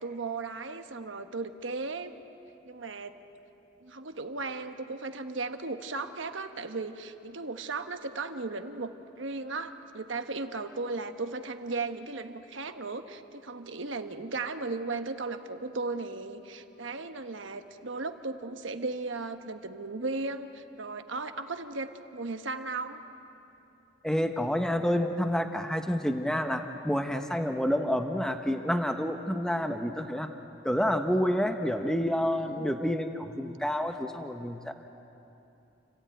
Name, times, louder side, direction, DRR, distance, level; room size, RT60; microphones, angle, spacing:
voice 1, 0.0-2.1 2.6-3.1 3.8-23.0 32.4-32.7, right 3 dB, 75° right, 7 dB, 1.2 m, -36 dB
voice 2, 24.0-30.3 30.6-34.7, equal, 5° left, 5 dB, 0.9 m, -29 dB
29.5 x 15.5 x 9.2 m, 2.9 s
head